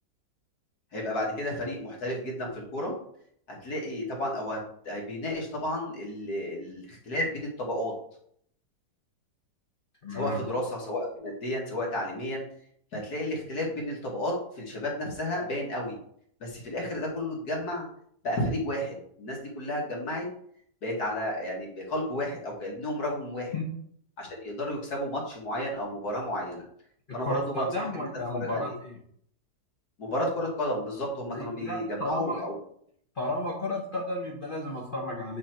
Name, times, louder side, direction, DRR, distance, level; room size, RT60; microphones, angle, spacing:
voice 1, 0.9-3.0 3.5-4.6 4.9-7.9 10.1-12.4 12.9-16.0 16.4-17.9 18.2-20.3 20.8-23.5 24.2-26.6 27.1-28.1 28.3-28.7 30.0-32.5, left 1 dB, 60° left, -2 dB, 2.2 m, -32 dB
voice 2, 10.0-10.5 23.5-23.6 27.2-29.0 31.3-32.4 33.1-35.4, left 1 dB, 35° left, -2 dB, 1.0 m, -33 dB
8.4 x 3.4 x 4.4 m, 0.66 s
omnidirectional pair, 1.9 m